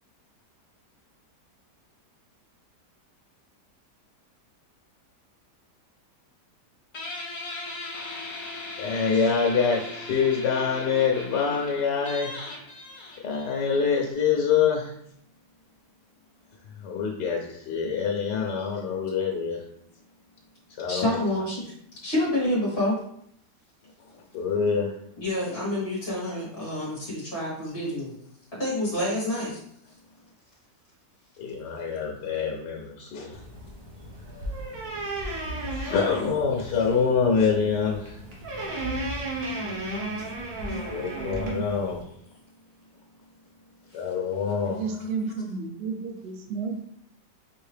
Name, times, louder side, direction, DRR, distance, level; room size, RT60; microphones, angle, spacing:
Guitar, 6.9-14.1, left 2 dB, 65° left, 1.4 m, -38 dB
voice 1, 8.8-12.3 13.2-14.9 16.8-19.6 20.8-21.2 24.3-24.9 31.4-33.4 35.6-38.2 40.7-42.0 43.9-45.1, left 6 dB, 85° left, -1 dB, 1.3 m, -25 dB
voice 2, 20.9-21.7 22.0-23.0 25.2-28.1 28.6-29.6 40.2-40.3, left 1 dB, 40° left, -6 dB, 1.5 m, -28 dB
sound 1, 33.3-42.0, right 1 dB, 65° right, 1.4 m, -34 dB
voice 3, 41.0-41.7 44.6-46.8, right 5 dB, 90° right, 4 dB, 0.5 m, -33 dB
4.9 x 2.7 x 3.3 m, 0.70 s
omnidirectional pair, 1.8 m